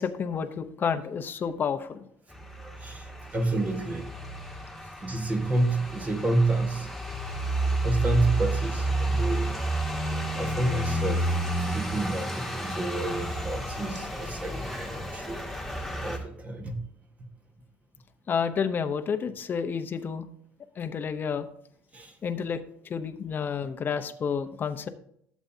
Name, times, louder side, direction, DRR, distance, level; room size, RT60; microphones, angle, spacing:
voice 1, 0.0-2.0 18.3-20.3 20.8-21.5 22.2-22.6 22.8-24.9, left 6 dB, 40° left, 7 dB, 0.8 m, -30 dB
sound 1, 2.3-16.2, right 1 dB, ahead, 1.9 m, -31 dB
voice 2, 2.7-4.1 5.0-6.9 7.8-9.5 10.4-15.4 16.0-16.8 21.9-22.2, right 2 dB, 25° right, 5 dB, 1.4 m, -29 dB
12.5 x 7.2 x 2.7 m, 0.66 s
cardioid pair, 110°, 5 cm